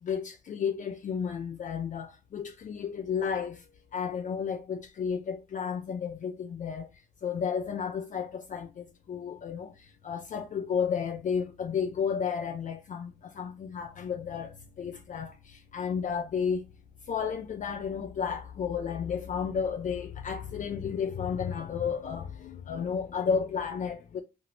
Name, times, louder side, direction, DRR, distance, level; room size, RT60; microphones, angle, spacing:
voice 1, 0.0-16.7 17.0-24.2, left 7 dB, 50° left, 0.4 m, -32 dB
2.9 x 2.5 x 2.7 m
cardioid pair, 85°, 16 cm